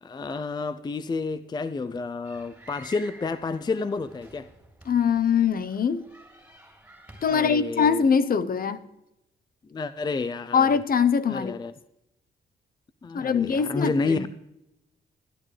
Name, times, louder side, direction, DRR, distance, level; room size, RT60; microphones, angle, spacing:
voice 1, 0.0-4.5 7.3-8.0 9.7-10.7 11.3-11.7 13.0-14.3, left 4 dB, 20° left, 13 dB, 0.4 m, -30 dB
sound 1, 2.2-7.8, right 2 dB, 5° right, 3.2 m, -50 dB
voice 2, 4.9-6.1 7.2-8.8 10.5-11.6 13.1-14.3, left 6 dB, 50° left, 13 dB, 0.8 m, -23 dB
19.5 x 11.0 x 3.3 m, 0.88 s
cardioid pair, 110°, 19 cm